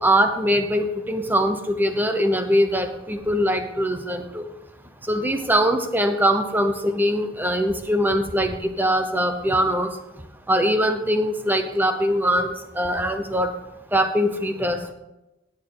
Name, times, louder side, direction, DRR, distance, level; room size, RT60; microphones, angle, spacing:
voice 1, 0.0-4.4 5.1-9.9 10.5-13.5 13.9-14.9, equal, 10° right, 7 dB, 0.8 m, -22 dB
17.0 x 6.8 x 3.9 m, 0.97 s
head